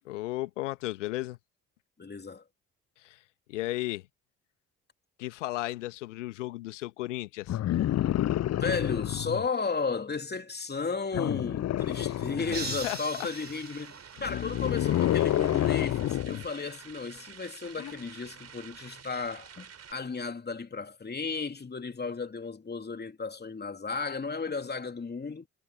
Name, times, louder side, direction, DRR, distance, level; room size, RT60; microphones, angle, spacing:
voice 1, 0.1-1.4 3.0-3.2 3.5-4.0 5.2-7.6 12.4-12.6 12.8-13.3, left 18 dB, 75° left, 2.0 m, -34 dB
voice 2, 2.0-2.4 8.5-25.5, left 4 dB, 25° left, 3.0 m, -34 dB
sound 1, 7.5-9.5 11.1-12.9 14.2-16.5 17.8-17.9, left 13 dB, 45° left, 0.9 m, -28 dB
sound 2, 11.8-19.9, right 7 dB, 40° right, 4.6 m, -49 dB
sound 3, 12.5-14.8, right 3 dB, 25° right, 4.0 m, -40 dB
figure-of-eight pair, 45°, 37 cm